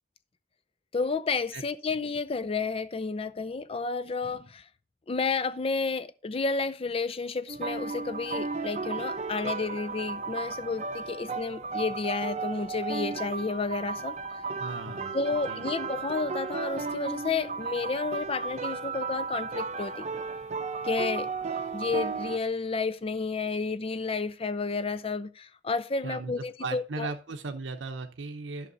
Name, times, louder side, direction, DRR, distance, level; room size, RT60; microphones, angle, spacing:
voice 1, 0.9-4.6 5.1-14.2 15.1-20.2 20.8-21.3 21.7-27.1, left 4 dB, 30° left, 0.5 m, -31 dB
sound 1, 7.5-22.4, right 4 dB, 40° right, 0.7 m, -34 dB
voice 2, 14.6-15.2 15.5-15.7 26.0-28.7, right 3 dB, 85° right, 0.8 m, -37 dB
11.0 x 6.4 x 3.9 m
head